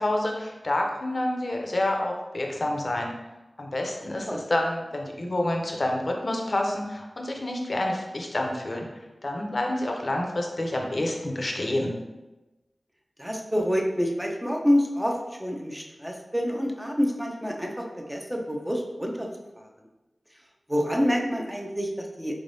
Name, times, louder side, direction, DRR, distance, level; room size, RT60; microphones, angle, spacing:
voice 1, 0.0-3.1 3.6-8.9 9.2-11.9, left 1 dB, 55° left, 1 dB, 0.6 m, -28 dB
voice 2, 13.2-19.3 19.6-19.7 20.7-22.4, equal, 5° right, 1 dB, 0.6 m, -27 dB
3.8 x 3.3 x 2.7 m, 1.1 s
wide cardioid pair, 50°, 0 cm